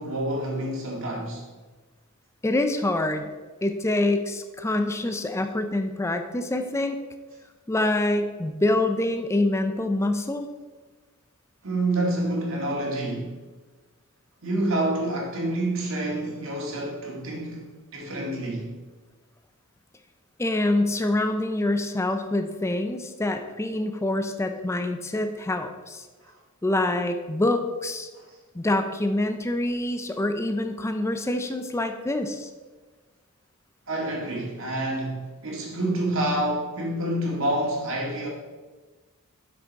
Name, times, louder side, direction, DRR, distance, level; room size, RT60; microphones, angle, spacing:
voice 1, 0.0-1.4 11.6-13.3 14.4-18.7 33.9-38.3, right 1 dB, 60° right, 1.9 m, -28 dB
voice 2, 2.4-3.3 3.6-7.0 7.7-10.4 20.4-26.0 26.6-28.1 28.5-32.5, left 2 dB, 10° left, 0.4 m, -26 dB
7.9 x 6.1 x 4.1 m
head